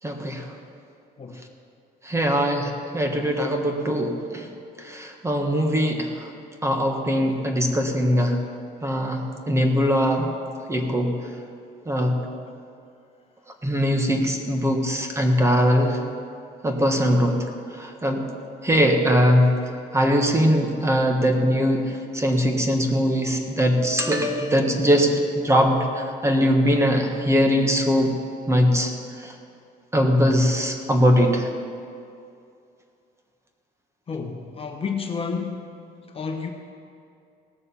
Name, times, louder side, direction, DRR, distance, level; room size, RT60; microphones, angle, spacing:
voice 1, 0.0-0.4 2.0-4.5 4.8-6.3 6.6-8.4 8.8-10.3 10.7-11.1 11.8-12.2 13.6-16.0 16.6-17.5 17.8-18.2 18.6-19.5 19.9-28.1 28.5-28.9 29.2-29.3 29.9-31.5, equal, 15° right, 3 dB, 1.5 m, -21 dB
voice 2, 34.1-35.7 36.1-36.5, left 5 dB, 35° left, 4 dB, 1.1 m, -30 dB
17.5 x 6.9 x 7.0 m, 2.5 s
cardioid pair, 110°, 17 cm